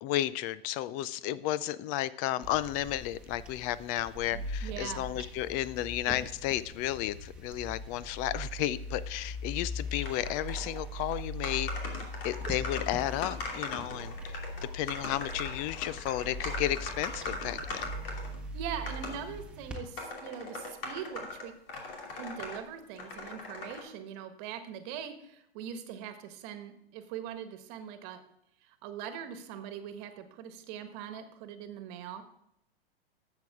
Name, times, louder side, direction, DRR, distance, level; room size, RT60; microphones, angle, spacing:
voice 1, 0.0-11.7 12.2-14.4 14.7-17.9, left 14 dB, 30° left, 18 dB, 0.3 m, -33 dB
sound 1, 2.4-19.8, left 1 dB, 5° right, 1.5 m, -40 dB
voice 2, 4.3-5.1 18.1-18.2 18.5-21.5 22.1-28.2 28.6-32.2, right 8 dB, 45° right, 8 dB, 1.4 m, -42 dB
sound 2, 10.0-10.8 11.1-11.2 11.4-18.4 18.9-19.2 19.7-22.6 23.0-23.8, left 2 dB, 65° left, 2.8 m, -40 dB
11.5 x 7.8 x 3.6 m, 0.75 s
hypercardioid pair, 115°, 30 cm